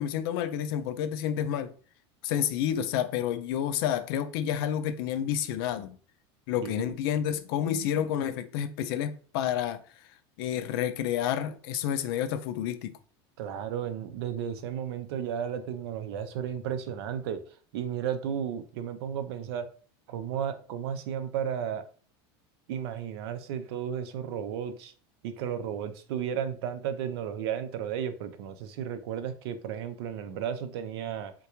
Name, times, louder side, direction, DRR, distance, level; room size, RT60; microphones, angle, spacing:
voice 1, 0.0-1.7 2.2-6.0 6.5-9.8 10.4-13.0, left 10 dB, 70° left, 0.4 m, -29 dB
voice 2, 6.6-7.0 13.4-19.7 20.1-21.9 22.7-24.9 25.2-31.3, right 8 dB, 80° right, 0.5 m, -34 dB
3.6 x 2.2 x 2.9 m
supercardioid pair, 145°, 13 cm